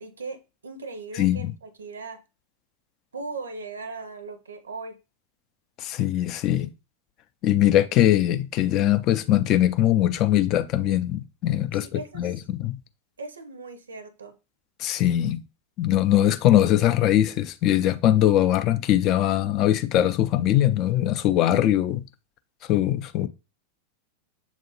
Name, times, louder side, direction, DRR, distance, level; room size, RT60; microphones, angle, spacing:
voice 1, 0.0-2.2 3.1-5.0 11.8-12.3 13.2-14.3, right 3 dB, 70° right, 0.5 m, -38 dB
voice 2, 1.2-1.5 5.8-6.7 7.4-12.8 14.8-15.4 15.8-22.0 22.7-23.3, left 12 dB, 35° left, 0.4 m, -21 dB
6.9 x 2.4 x 2.8 m
figure-of-eight pair, 90°, 0 cm